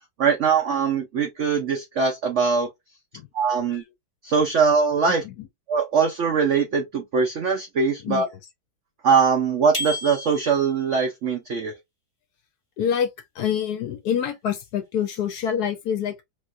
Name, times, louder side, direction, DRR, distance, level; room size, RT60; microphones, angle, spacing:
voice 1, 0.2-2.7 3.3-3.8 4.2-5.2 5.7-8.3 9.0-11.7, right 5 dB, 80° right, 0.6 m, -22 dB
sound 1, 9.7-10.8, left 1 dB, 15° left, 1.1 m, -32 dB
voice 2, 12.8-13.1 13.4-16.2, left 8 dB, 70° left, 1.0 m, -26 dB
3.3 x 3.1 x 2.4 m
omnidirectional pair, 2.1 m